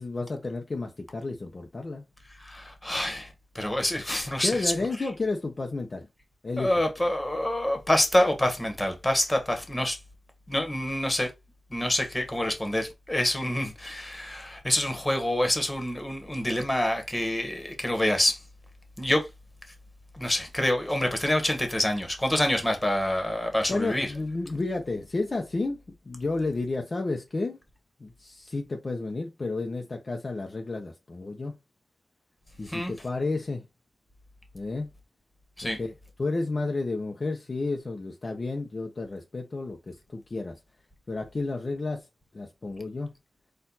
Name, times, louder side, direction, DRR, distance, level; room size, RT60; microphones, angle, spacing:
voice 1, 0.0-2.0 4.4-6.1 6.4-6.7 23.7-25.8 26.1-27.6 28.0-31.5 32.6-33.6 34.5-34.9 35.6-35.9 36.2-40.5 41.1-42.0 42.3-43.1, left 3 dB, 45° left, 0.7 m, -31 dB
voice 2, 2.4-3.3 3.5-4.7 6.6-10.0 10.5-11.3 11.7-18.4 19.0-19.2 20.1-24.1 32.7-32.9 35.6-35.8, left 1 dB, 15° left, 1.5 m, -26 dB
4.4 x 2.5 x 4.0 m
wide cardioid pair, 70°, 0 cm